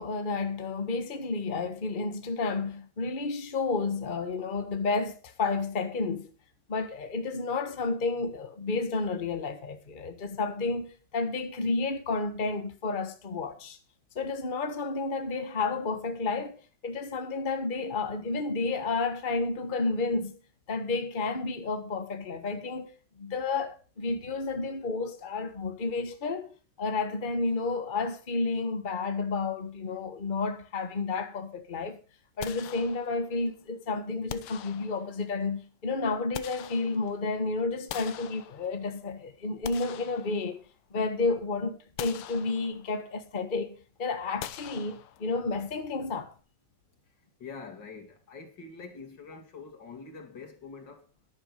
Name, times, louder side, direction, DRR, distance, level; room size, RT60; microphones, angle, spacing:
voice 1, 0.0-6.3 6.7-13.8 14.1-20.4 20.7-22.9 23.2-26.5 26.8-32.0 32.4-40.6 40.9-46.3, left 3 dB, 90° left, 0.4 m, -31 dB
sound 1, 32.4-33.4 34.3-35.3 36.0-37.3 37.9-39.0 39.4-40.9 41.3-41.4 42.0-43.0 44.4-45.5, left 11 dB, 70° left, 1.3 m, -43 dB
voice 2, 47.4-51.1, left 4 dB, 40° left, 2.7 m, -45 dB
11.0 x 10.5 x 5.3 m
omnidirectional pair, 3.3 m